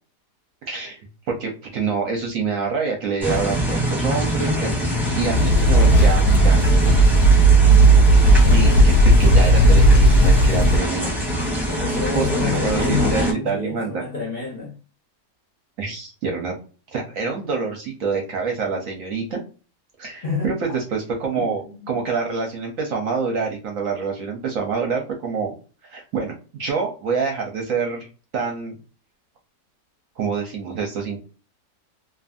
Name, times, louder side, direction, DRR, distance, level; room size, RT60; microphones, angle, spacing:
voice 1, 0.7-1.0 1.3-4.7 5.1-6.6 8.4-8.9 9.2-11.1 12.1-14.0 15.8-16.6 16.9-19.4 20.0-25.5 25.8-28.1 28.3-28.8 30.2-31.2, right 5 dB, 65° right, 0.9 m, -26 dB
sound 1, 3.2-13.3, equal, ahead, 0.9 m, -24 dB
sound 2, 5.3-10.8, right 1 dB, 70° left, 0.9 m, -14 dB
voice 2, 7.9-9.1 11.7-14.8 20.2-20.5 21.3-21.9, left 5 dB, 40° left, 0.8 m, -29 dB
2.6 x 2.5 x 2.4 m
omnidirectional pair, 1.8 m